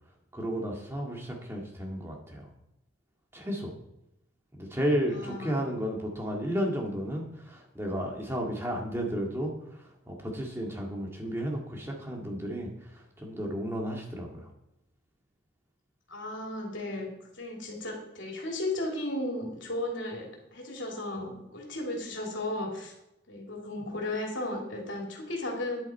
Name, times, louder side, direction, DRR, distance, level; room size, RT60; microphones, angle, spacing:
voice 1, 0.3-2.4 3.3-3.7 4.6-9.5 10.1-12.7 12.9-14.5, equal, 15° right, 0 dB, 2.0 m, -33 dB
voice 2, 5.1-5.6 16.1-22.9 23.3-25.8, left 1 dB, 75° left, 0 dB, 2.8 m, -35 dB
10.5 x 8.0 x 4.5 m, 0.88 s
head